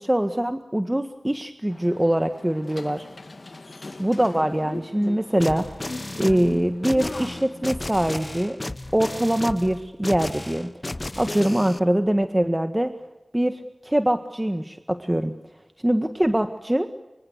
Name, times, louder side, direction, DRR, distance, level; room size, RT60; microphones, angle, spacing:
voice 1, 0.0-3.0 4.0-5.8 6.2-8.6 8.9-10.7 11.2-12.9 13.3-15.3 15.8-16.9, right 1 dB, 20° right, 8 dB, 1.7 m, -23 dB
sound 1, 1.7-7.8, left 2 dB, 70° left, 1.8 m, -39 dB
sound 2, 5.4-11.8, left 2 dB, 40° left, 1.0 m, -34 dB
25.5 x 24.5 x 8.2 m, 1.0 s
wide cardioid pair, 40°, 0 cm